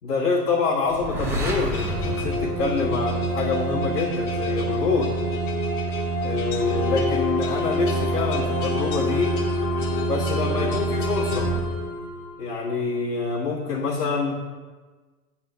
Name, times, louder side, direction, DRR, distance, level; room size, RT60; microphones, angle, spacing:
voice 1, 0.0-5.1 6.2-9.3 10.1-11.5 12.4-14.3, left 4 dB, 65° left, -8 dB, 1.6 m, -26 dB
sound 1, 0.9-3.7, equal, 5° right, 0.7 m, -30 dB
sound 2, 1.7-12.4, equal, 45° left, 1.5 m, -26 dB
8.7 x 3.7 x 4.5 m, 1.3 s
figure-of-eight pair, 105°, 50 cm